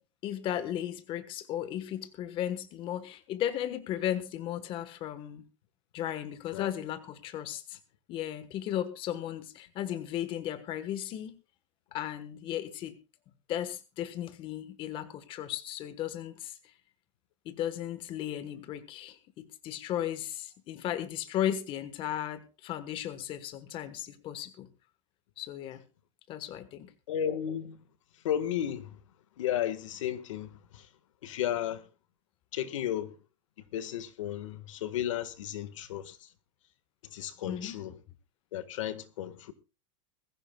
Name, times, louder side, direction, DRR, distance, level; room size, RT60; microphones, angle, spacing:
voice 1, 0.2-5.5 5.9-7.8 8.1-11.3 11.9-13.0 13.5-16.6 17.4-24.7 25.4-25.8 26.3-26.9 37.5-37.8, left 11 dB, 35° left, 1.3 m, -35 dB
voice 2, 27.1-27.8 28.2-29.0 29.4-30.9 31.2-31.9 32.5-33.2 33.7-36.3 37.0-37.9 38.5-39.5, left 10 dB, 85° left, 1.6 m, -34 dB
22.0 x 14.5 x 2.3 m
supercardioid pair, 155°, 16 cm